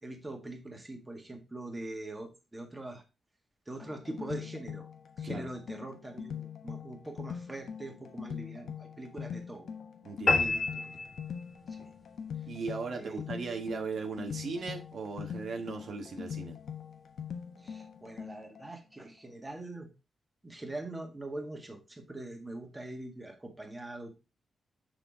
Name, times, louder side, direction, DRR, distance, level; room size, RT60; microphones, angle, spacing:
voice 1, 0.0-3.0 3.7-4.9 5.2-9.7 10.4-11.0 11.7-11.9 12.9-13.2 17.6-19.9 20.4-24.1, right 2 dB, 15° right, 1.8 m, -43 dB
sound 1, 3.8-18.7, left 7 dB, 70° left, 1.2 m, -42 dB
voice 2, 10.0-10.5 12.5-16.6, right 4 dB, 60° right, 1.3 m, -37 dB
sound 2, 10.3-11.8, left 3 dB, 40° left, 2.0 m, -29 dB
6.7 x 6.2 x 3.7 m
wide cardioid pair, 150°, 0 cm